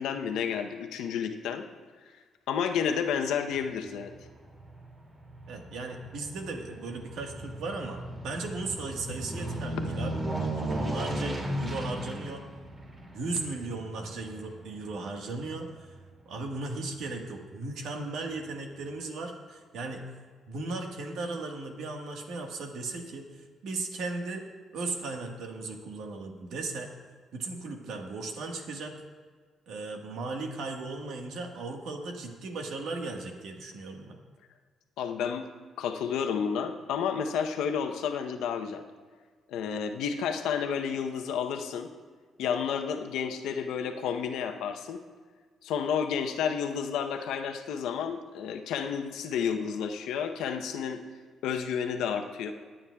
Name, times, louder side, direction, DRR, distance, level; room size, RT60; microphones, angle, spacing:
voice 1, 0.0-1.6 2.5-4.1 35.0-38.8 39.5-41.9 42.4-45.0 45.6-51.0 51.4-52.5, left 7 dB, 85° left, 6 dB, 0.7 m, -31 dB
Aircraft, 3.5-16.0 16.4-16.5, right 1 dB, 30° right, 2.4 m, -37 dB
voice 2, 5.5-12.5 13.1-15.9 16.2-20.0 20.5-24.4 24.7-26.9 27.3-29.0 29.7-34.2, right 3 dB, 80° right, 3 dB, 1.4 m, -36 dB
22.0 x 8.8 x 2.3 m, 1.5 s
cardioid pair, 90°, 0 cm